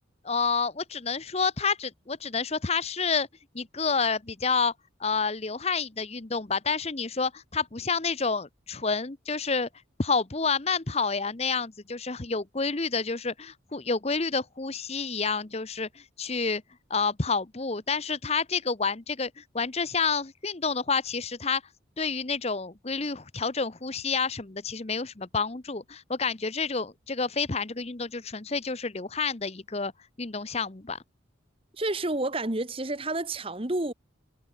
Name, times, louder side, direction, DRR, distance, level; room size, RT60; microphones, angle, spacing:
voice 1, 0.2-3.3 3.5-4.7 5.0-9.7 10.0-16.6 16.9-21.6 22.0-29.9 30.2-31.0, left 4 dB, 30° left, 0.9 m, -29 dB
voice 2, 31.8-33.9, right 2 dB, 30° right, 1.4 m, -29 dB
head